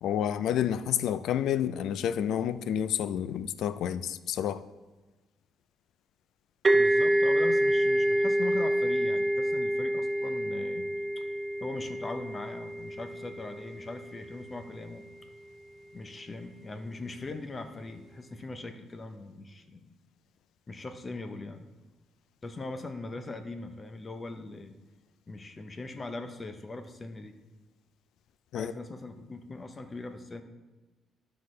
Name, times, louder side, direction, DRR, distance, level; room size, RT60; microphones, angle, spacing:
voice 1, 0.0-4.6 28.5-28.7, left 10 dB, 70° left, 0.3 m, -29 dB
sound 1, 6.6-14.2, right 1 dB, 20° right, 0.4 m, -27 dB
voice 2, 6.7-10.9 11.2-11.3 11.6-15.0 15.9-19.9 20.7-21.7 22.4-24.7 25.3-27.3 28.5-30.4, left 3 dB, 20° left, 0.6 m, -40 dB
11.5 x 5.9 x 3.2 m
cardioid pair, 140°, 0 cm